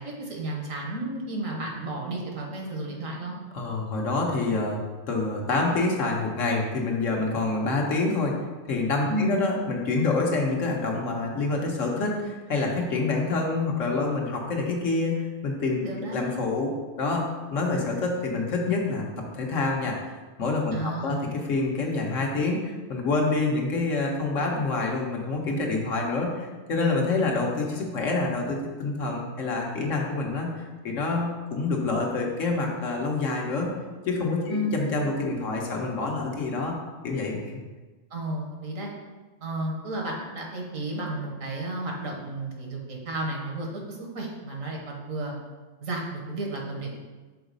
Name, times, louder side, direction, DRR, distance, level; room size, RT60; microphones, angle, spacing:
voice 1, 0.0-3.4 9.1-9.4 15.8-16.2 20.7-21.3 34.5-34.8 38.1-38.9 39.4-45.3 45.8-47.0, right 1 dB, 90° right, 0 dB, 1.6 m, -32 dB
voice 2, 3.5-4.8 5.1-8.3 8.7-15.8 16.1-16.7 17.0-19.0 19.3-20.0 20.4-33.7 34.1-36.7 37.0-37.5, left 3 dB, 75° left, 0 dB, 1.4 m, -27 dB
5.7 x 4.0 x 5.2 m, 1.3 s
omnidirectional pair, 1.3 m